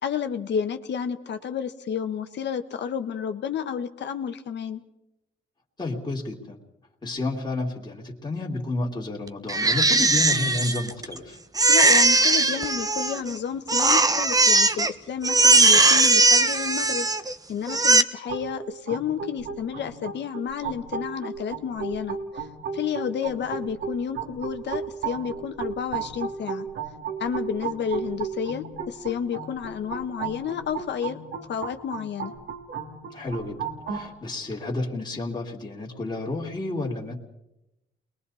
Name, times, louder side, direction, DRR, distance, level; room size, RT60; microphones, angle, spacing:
voice 1, 0.0-4.8 11.7-17.1 17.5-22.5 22.7-26.7 27.2-31.2 31.5-32.3, left 7 dB, 60° left, 7 dB, 1.4 m, -31 dB
voice 2, 5.8-6.6 7.0-11.4 33.1-37.1, left 2 dB, 20° left, -3 dB, 2.9 m, -31 dB
Crying sobbing, 9.5-11.2 11.6-13.3 13.7-14.9 15.2-17.3 17.7-18.0, right 3 dB, 20° right, 1.0 m, -19 dB
sound 1, 18.3-34.1, right 6 dB, 75° right, 2.9 m, -35 dB
29.0 x 21.5 x 4.3 m, 0.90 s
cardioid pair, 90°, 20 cm